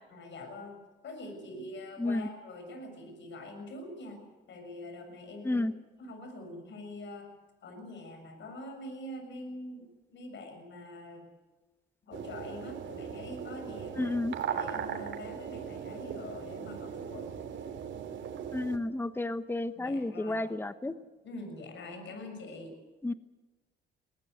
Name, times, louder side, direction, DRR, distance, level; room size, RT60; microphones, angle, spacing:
voice 1, 0.1-5.7 6.0-7.3 7.6-11.3 12.0-14.2 14.5-17.3 19.8-20.4 21.2-22.8, left 1 dB, 65° left, 5 dB, 7.0 m, -44 dB
sound 1, 12.1-18.8, right 8 dB, 70° right, 3.2 m, -39 dB
voice 2, 14.0-14.3 18.5-20.9 23.0-23.1, left 2 dB, 10° left, 12 dB, 1.1 m, -31 dB
21.5 x 19.5 x 8.0 m, 1.2 s
cardioid pair, 90°, 20 cm